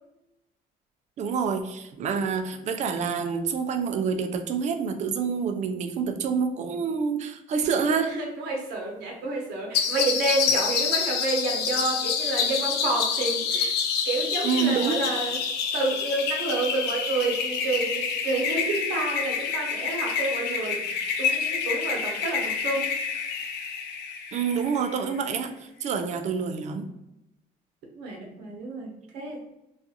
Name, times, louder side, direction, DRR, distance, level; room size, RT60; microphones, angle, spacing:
voice 1, 1.2-8.2 14.4-15.0 24.3-25.5 25.8-26.9, right 6 dB, 45° right, 6 dB, 0.4 m, -27 dB
voice 2, 8.0-13.7 14.0-15.4 15.7-22.9 28.0-29.4, right 2 dB, 85° right, 0 dB, 0.8 m, -29 dB
sound 1, 9.7-25.0, left 6 dB, 75° left, 0.4 m, -28 dB
2.4 x 2.4 x 2.7 m, 0.89 s
cardioid pair, 110°, 17 cm